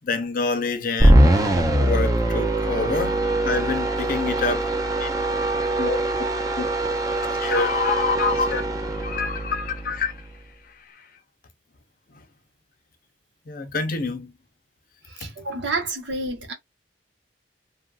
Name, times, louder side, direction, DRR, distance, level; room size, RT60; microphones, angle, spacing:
voice 1, 0.0-3.2 3.4-4.7 5.0-5.1 5.8-6.0 6.6-6.7 7.1-8.6 8.9-10.2 10.9-11.0 13.5-14.3 15.2-15.3, left 4 dB, 50° left, 0.5 m, -27 dB
sound 1, 1.0-10.4, right 1 dB, 20° right, 0.5 m, -22 dB
voice 2, 15.1-16.5, right 3 dB, 80° right, 1.1 m, -29 dB
2.8 x 2.5 x 2.3 m
head